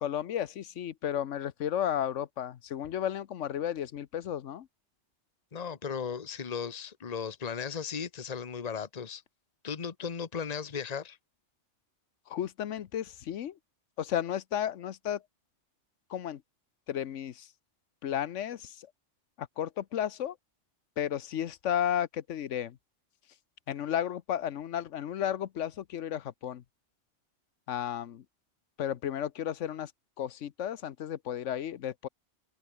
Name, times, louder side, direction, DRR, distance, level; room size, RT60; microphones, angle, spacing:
voice 1, 0.0-4.7 12.3-13.5 14.0-15.2 16.1-16.4 16.9-17.5 18.0-18.9 19.4-20.4 21.0-22.8 23.7-26.6 27.7-28.2 28.8-29.9 30.2-32.1, left 10 dB, 85° left, 1.2 m, -33 dB
voice 2, 5.5-9.2 9.6-11.2, left 6 dB, 35° left, 1.1 m, -36 dB
omnidirectional pair, 1.2 m